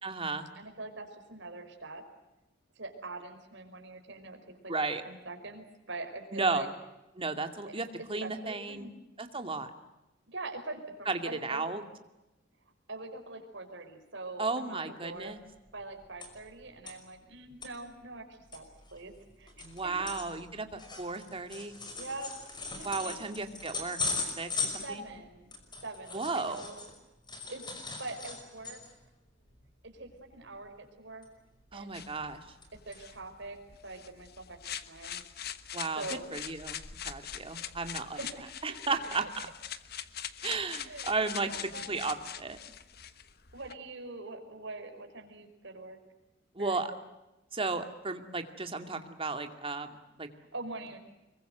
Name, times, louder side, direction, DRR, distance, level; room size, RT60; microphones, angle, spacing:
voice 1, 0.0-0.5 4.7-5.0 6.3-6.7 7.2-8.9 9.2-9.7 11.1-11.8 14.4-15.4 19.6-21.7 22.8-25.1 26.1-26.7 31.7-32.4 35.7-36.8 37.0-38.2 38.6-39.3 40.4-41.5 41.9-42.6 46.5-46.9 47.5-50.3, right 3 dB, 30° right, 6 dB, 2.4 m, -34 dB
voice 2, 0.6-2.0 2.8-4.7 5.0-6.7 8.2-8.9 10.3-11.7 12.9-15.4 15.7-19.5 19.8-20.1 22.0-22.3 22.8-23.1 24.8-25.5 25.8-26.8 27.5-27.7 28.0-28.8 29.8-31.3 31.7-32.0 32.7-35.2 36.0-36.3 38.2-38.8 40.8-42.0 43.5-46.0 46.6-46.8 50.5-51.0, right 2 dB, 70° right, 4 dB, 5.2 m, -43 dB
sound 1, 15.6-16.5 16.9-17.0 17.4-17.7 18.2-18.3 18.5-27.0 27.3-29.0 29.4-29.6 29.9-30.2 31.2-31.8 32.2-32.7 32.9-33.0 33.6-33.7, left 4 dB, 25° left, 5.5 m, -39 dB
sound 2, 31.9-43.7, left 9 dB, 55° left, 1.3 m, -43 dB
26.0 x 23.0 x 8.0 m, 0.98 s
head